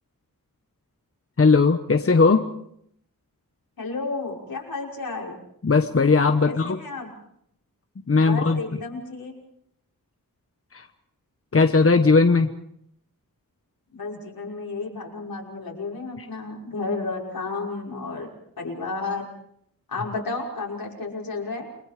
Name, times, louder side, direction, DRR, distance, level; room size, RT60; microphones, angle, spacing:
voice 1, 1.4-2.4 5.6-6.8 8.1-8.6 11.5-12.5, left 4 dB, 40° left, 7 dB, 1.2 m, -18 dB
voice 2, 3.8-5.4 6.4-7.1 8.2-9.3 13.9-18.3 18.6-19.3 19.9-21.7, left 3 dB, 85° left, -1 dB, 5.8 m, -32 dB
29.5 x 21.5 x 5.1 m, 0.70 s
wide cardioid pair, 90°, 34 cm